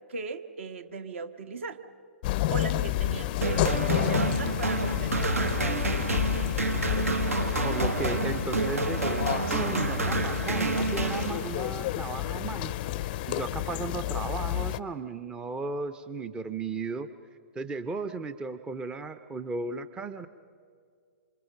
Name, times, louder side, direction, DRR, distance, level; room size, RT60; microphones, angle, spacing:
voice 1, 0.1-1.8 2.5-6.1, right 4 dB, 60° right, 9 dB, 1.4 m, -38 dB
sound 1, 2.2-14.8, left 15 dB, 40° left, 0.5 m, -30 dB
sound 2, 3.4-11.8, right 3 dB, 75° right, 1.3 m, -29 dB
voice 2, 7.6-12.9 13.3-17.1 17.5-20.3, right 4 dB, 10° right, 12 dB, 0.6 m, -35 dB
27.5 x 26.0 x 5.2 m, 2.2 s
figure-of-eight pair, 115°, 8 cm